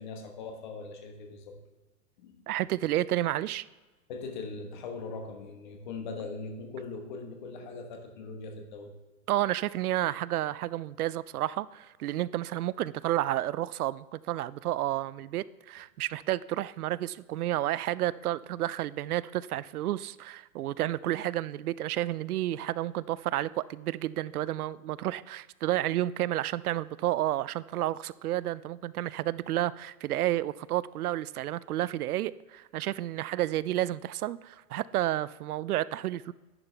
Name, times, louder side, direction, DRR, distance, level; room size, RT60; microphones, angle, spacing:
voice 1, 0.0-1.6 2.2-2.4 4.1-8.9, left 4 dB, 30° left, 5 dB, 1.1 m, -40 dB
voice 2, 2.5-3.6 9.3-36.3, right 14 dB, 70° right, 18 dB, 0.5 m, -31 dB
11.0 x 8.9 x 3.4 m, 1.2 s
hypercardioid pair, 175°, 46 cm